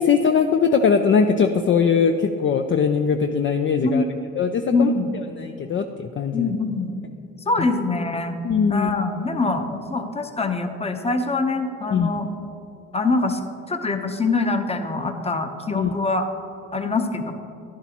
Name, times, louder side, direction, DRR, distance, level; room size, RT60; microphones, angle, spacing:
voice 1, 0.0-4.0 4.4-4.9 5.4-6.5 8.4-8.9 11.9-12.1 15.7-15.9, left 6 dB, 40° left, 6 dB, 0.5 m, -20 dB
voice 2, 4.7-5.1 6.3-6.9 7.5-8.4 8.7-12.3 12.9-13.4 13.7-16.3 16.7-17.3, left 3 dB, 20° left, 6 dB, 0.8 m, -24 dB
11.0 x 11.0 x 3.0 m, 2.8 s
cardioid pair, 90°, 30 cm